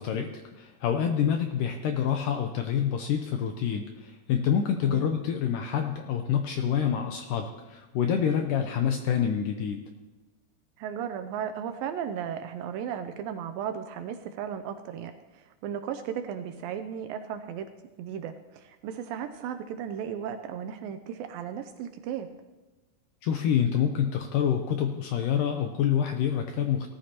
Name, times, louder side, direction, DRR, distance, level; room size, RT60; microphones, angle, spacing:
voice 1, 0.0-9.8 23.2-26.9, left 8 dB, 80° left, 5 dB, 1.9 m, -27 dB
voice 2, 10.8-15.1 15.6-17.7 18.0-22.3, right 8 dB, 80° right, 8 dB, 2.2 m, -35 dB
18.0 x 13.5 x 2.9 m, 1.2 s
omnidirectional pair, 4.5 m